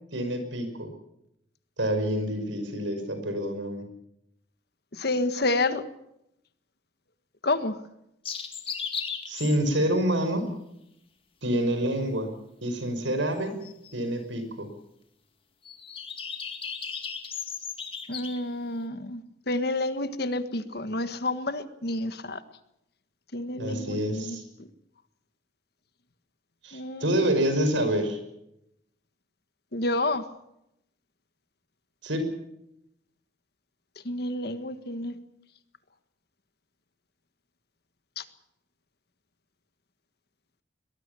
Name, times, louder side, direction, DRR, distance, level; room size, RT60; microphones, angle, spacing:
voice 1, 0.1-0.9 1.8-3.9 9.3-10.5 11.4-13.6 13.9-14.7 23.6-24.4 26.6-28.2 32.0-32.3, right 1 dB, 75° right, 8 dB, 5.9 m, -27 dB
voice 2, 5.0-5.8 7.4-7.8 18.1-22.4 23.3-24.4 26.7-27.1 29.7-30.2 34.0-35.2 38.2-38.3, left 2 dB, 55° left, 11 dB, 1.6 m, -29 dB
sound 1, 8.3-10.0 13.6-14.0 15.7-18.4, left 6 dB, 30° left, 2.3 m, -36 dB
22.5 x 20.5 x 7.0 m, 0.80 s
head